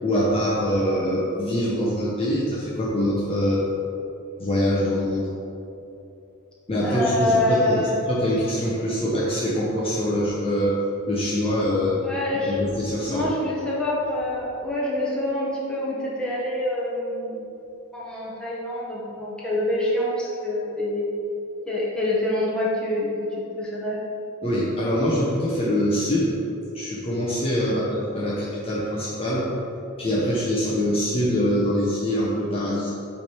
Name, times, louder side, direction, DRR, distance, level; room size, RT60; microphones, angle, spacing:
voice 1, 0.0-3.6 4.4-5.3 6.7-10.7 11.1-12.0 12.3-13.3 24.4-26.4 26.7-29.5 30.0-32.9, equal, 25° left, -7 dB, 0.8 m, -24 dB
voice 2, 6.8-8.0 12.0-12.6 13.1-17.5 17.9-21.1 21.7-23.1 23.6-24.0 27.7-28.0, left 1 dB, 5° left, -7 dB, 1.3 m, -26 dB
8.2 x 3.4 x 4.5 m, 2.9 s
head